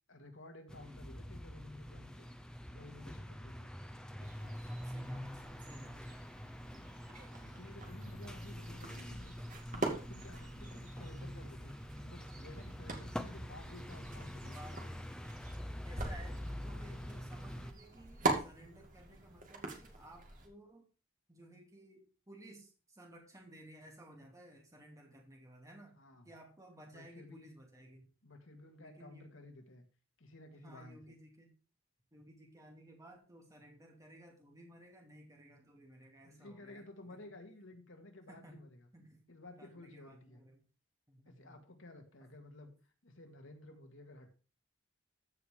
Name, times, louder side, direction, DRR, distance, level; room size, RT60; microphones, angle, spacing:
voice 1, 0.1-2.3 2.7-3.7 4.1-4.7 7.4-9.4 9.7-14.8 26.0-26.3 26.9-27.5 28.2-29.9 30.2-31.2 36.2-38.9 39.3-40.4 41.3-44.4, left 2 dB, 65° left, 4 dB, 2.1 m, -54 dB
sound 1, 0.7-17.7, equal, 5° left, 0.8 m, -45 dB
sound 2, 4.2-20.5, right 3 dB, 40° right, 2.3 m, -44 dB
voice 2, 4.6-6.2 7.9-8.4 12.8-12.9 14.5-15.1 15.8-20.8 21.3-26.0 26.2-28.1 28.8-29.4 30.6-31.5 32.1-37.2 38.3-39.2 39.6-40.7 41.1-41.6, right 1 dB, 15° right, 1 dB, 2.6 m, -57 dB
14.5 x 5.1 x 5.1 m, 0.36 s
head